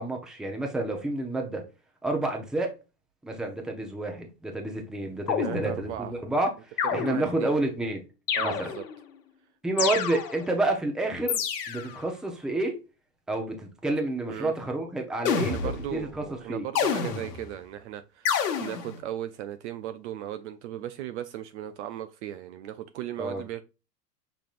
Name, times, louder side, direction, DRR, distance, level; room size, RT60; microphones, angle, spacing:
voice 1, 0.0-1.6 2.0-2.7 3.2-6.5 6.9-8.0 8.4-8.7 9.6-11.4 11.7-12.7 13.3-15.6 15.9-16.2 16.5-16.6 23.2-23.4, right 2 dB, ahead, 0.6 m, -29 dB
sound 1, 5.3-6.1 6.8-7.5 8.3-9.0 9.8-10.6 11.3-12.0 15.2-16.0 16.7-17.5 18.2-19.0, left 7 dB, 75° left, 1.2 m, -29 dB
voice 2, 5.4-6.1 6.8-7.5 8.3-8.9 14.3-14.5 15.3-23.6, right 12 dB, 50° right, 0.5 m, -37 dB
5.9 x 3.4 x 2.4 m
hypercardioid pair, 130°, 48 cm